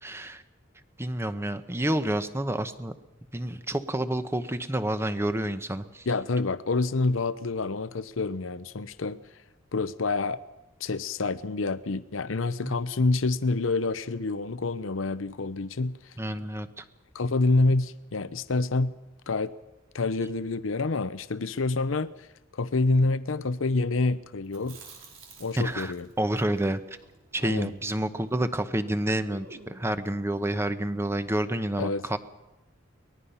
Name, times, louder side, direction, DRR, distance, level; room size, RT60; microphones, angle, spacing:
voice 1, 0.0-0.4 1.0-2.9 3.3-6.1 12.6-12.8 16.2-16.8 25.6-26.8 27.3-32.2, right 1 dB, 15° right, 10 dB, 1.0 m, -29 dB
voice 2, 6.1-9.2 9.7-10.4 10.8-16.0 17.1-18.9 19.3-19.5 19.9-22.3 22.5-24.8 25.4-26.1 27.4-27.7 31.8-32.0, left 3 dB, 85° left, 13 dB, 0.7 m, -27 dB
Chewing mastication, 24.4-28.6 28.9-29.0 29.3-30.1, right 3 dB, 90° right, 4.5 m, -51 dB
23.5 x 19.5 x 5.7 m, 0.99 s
head